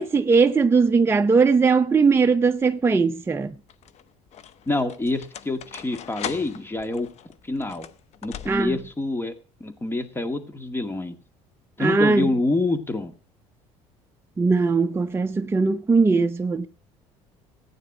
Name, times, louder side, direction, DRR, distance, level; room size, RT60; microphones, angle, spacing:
voice 1, 0.0-3.6 8.5-8.8 11.8-12.3 14.4-16.7, right 4 dB, 20° right, 0.7 m, -20 dB
sound 1, 2.1-2.6 3.5-9.0, left 9 dB, 55° left, 1.0 m, -40 dB
voice 2, 4.7-7.1 7.4-7.9 8.2-9.3 9.6-11.2 11.8-13.1, left 2 dB, 15° left, 2.0 m, -27 dB
15.0 x 9.2 x 6.1 m
supercardioid pair, 100°, 14 cm